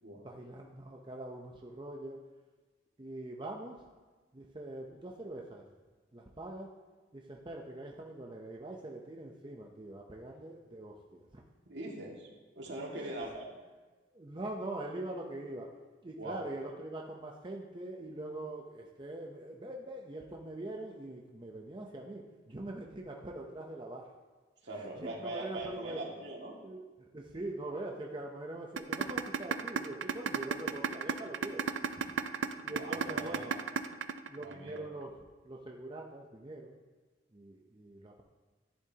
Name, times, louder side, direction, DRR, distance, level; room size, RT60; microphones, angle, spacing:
voice 1, 0.1-2.2 3.0-3.8 4.3-5.7 6.1-6.7 7.1-11.4 12.9-13.1 14.1-15.7 16.0-24.1 24.7-26.0 26.6-31.6 32.6-33.5 34.3-35.1 35.4-36.8 37.3-38.2, right 1 dB, 25° right, 0 dB, 0.7 m, -43 dB
voice 2, 11.7-12.3 12.6-13.5 16.2-16.4 24.6-26.6 32.6-33.6 34.4-34.9, right 2 dB, 70° right, -2 dB, 2.1 m, -42 dB
sound 1, 28.8-34.8, right 6 dB, 90° right, 0.5 m, -32 dB
11.5 x 11.0 x 2.9 m, 1.3 s
head